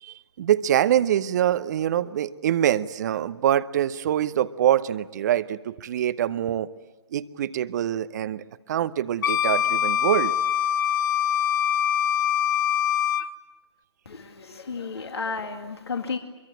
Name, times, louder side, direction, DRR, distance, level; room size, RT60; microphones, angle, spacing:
voice 1, 0.0-6.7 7.1-10.3, right 11 dB, 40° right, 16 dB, 0.8 m, -24 dB
Wind instrument woodwind instrument, 9.2-13.3, left 10 dB, 45° left, 1.3 m, -23 dB
voice 2, 14.1-16.2, left 4 dB, 65° left, 5 dB, 2.2 m, -32 dB
24.0 x 23.5 x 8.8 m, 1.2 s
figure-of-eight pair, 130°, 15 cm